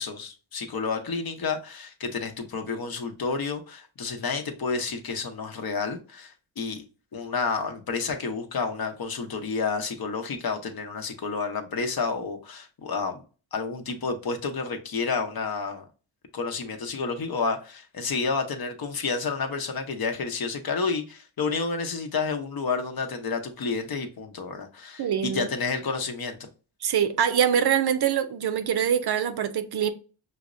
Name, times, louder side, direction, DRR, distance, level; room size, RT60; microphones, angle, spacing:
voice 1, 0.0-6.8 7.1-13.2 13.5-15.8 16.3-26.5, left 4 dB, 50° left, 0.8 m, -30 dB
voice 2, 25.0-25.5 26.8-29.9, right 8 dB, 60° right, 0.6 m, -24 dB
5.6 x 2.0 x 2.5 m
cardioid pair, 55°, 46 cm